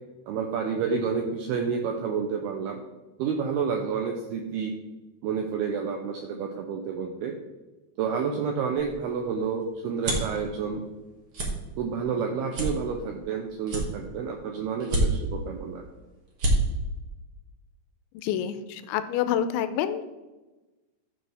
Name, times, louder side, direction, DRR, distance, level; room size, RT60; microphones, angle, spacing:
voice 1, 0.3-2.8 3.2-4.7 5.2-7.4 8.0-10.8 11.8-15.8, right 6 dB, 85° right, 3 dB, 2.2 m, -29 dB
sound 1, 8.8-10.4 10.9-11.1 11.3-11.5 12.0-12.1 12.5-13.3 13.6-14.3 14.8-15.4 15.9-16.0 16.3-16.6, right 1 dB, 50° right, 1.8 m, -27 dB
voice 2, 18.1-20.0, left 10 dB, 85° left, 11 dB, 2.9 m, -27 dB
14.0 x 6.5 x 3.5 m, 1.1 s
omnidirectional pair, 5.4 m